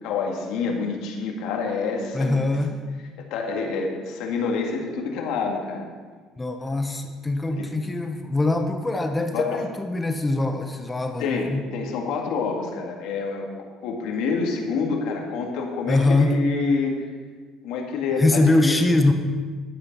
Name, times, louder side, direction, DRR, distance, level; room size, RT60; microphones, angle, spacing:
voice 1, 0.0-2.5 3.3-5.9 7.5-7.7 9.3-9.6 11.2-17.1 17.6-18.7, left 4 dB, 75° left, 1 dB, 2.1 m, -27 dB
voice 2, 2.1-2.8 6.4-11.6 15.9-16.4 18.2-19.1, left 2 dB, 15° left, 5 dB, 0.8 m, -22 dB
11.5 x 8.6 x 5.4 m, 1.5 s
cardioid pair, 125°, 0 cm